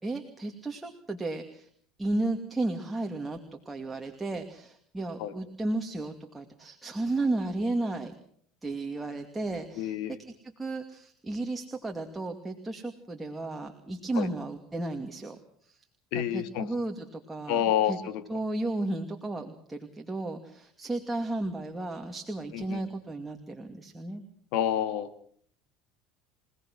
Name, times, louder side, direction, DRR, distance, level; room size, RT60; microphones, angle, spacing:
voice 1, 0.0-1.7 2.0-8.1 8.6-10.2 10.6-15.8 16.1-17.6 17.9-18.0 18.3-24.2, right 2 dB, 10° right, 3 dB, 2.5 m, -33 dB
voice 2, 9.8-10.2 14.2-14.3 16.1-16.7 17.5-18.2 22.5-22.9 24.5-25.1, left 10 dB, 70° left, 10 dB, 2.4 m, -28 dB
27.5 x 18.5 x 6.3 m, 0.63 s
supercardioid pair, 115°, 0 cm